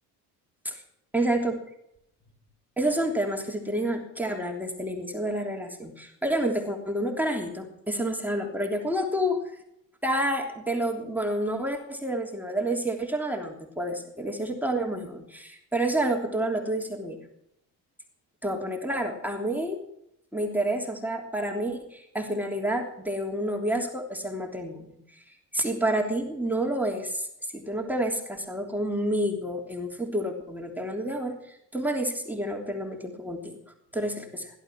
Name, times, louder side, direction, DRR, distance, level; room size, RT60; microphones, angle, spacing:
voice 1, 1.1-1.5 2.8-9.4 10.0-17.2 18.4-19.8 20.3-25.2 25.5-27.3 27.5-33.6 33.9-34.5, right 1 dB, 5° right, 1 dB, 3.2 m, -29 dB
16.5 x 12.0 x 6.1 m, 0.77 s
supercardioid pair, 80°, 40 cm